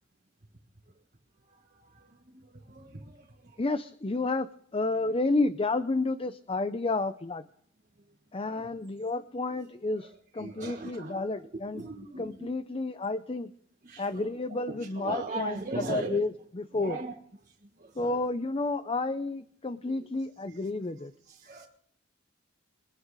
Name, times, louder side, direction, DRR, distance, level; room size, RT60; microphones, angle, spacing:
voice 1, 1.4-3.6 8.4-8.7 10.0-11.3 11.7-12.5 13.8-14.3 14.7-16.3 16.7-17.1 17.4-18.2 19.9-20.1 20.5-20.7 21.3-21.7, right 3 dB, 40° right, -2 dB, 1.6 m, -40 dB
voice 2, 3.6-7.4 8.3-11.8 12.2-13.5 14.0-17.0 18.0-21.1, left 3 dB, 30° left, 11 dB, 0.6 m, -31 dB
23.0 x 9.7 x 4.9 m, 0.65 s
head